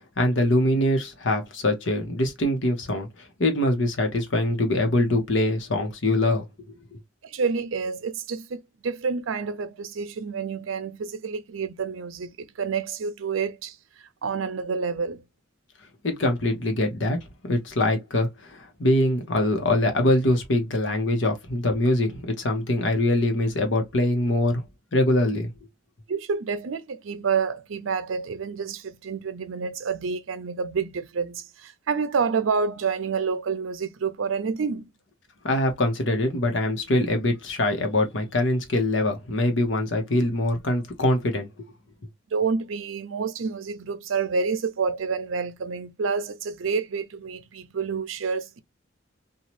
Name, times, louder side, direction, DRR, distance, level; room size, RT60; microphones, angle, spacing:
voice 1, 0.2-6.7 16.0-17.2 17.5-24.6 24.9-25.5 35.4-41.5, left 1 dB, 75° left, 1.0 m, -23 dB
voice 2, 7.2-13.8 14.2-15.2 26.1-34.9 42.3-48.6, right 5 dB, 90° right, 0.5 m, -28 dB
2.8 x 2.3 x 3.0 m
head